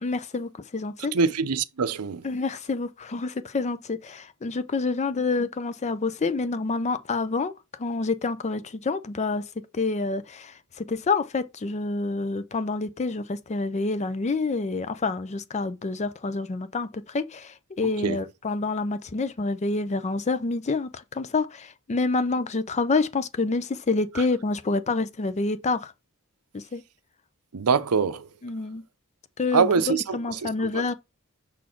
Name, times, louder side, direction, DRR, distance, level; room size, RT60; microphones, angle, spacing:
voice 1, 0.0-1.1 2.2-7.5 7.8-9.5 9.7-25.9 26.5-26.8 28.4-28.8 29.4-30.9, left 3 dB, 30° left, 0.5 m, -28 dB
voice 2, 1.0-2.3 17.8-18.2 24.2-24.3 27.5-28.3 29.5-30.8, right 5 dB, 80° right, 0.6 m, -25 dB
6.0 x 4.1 x 4.4 m
head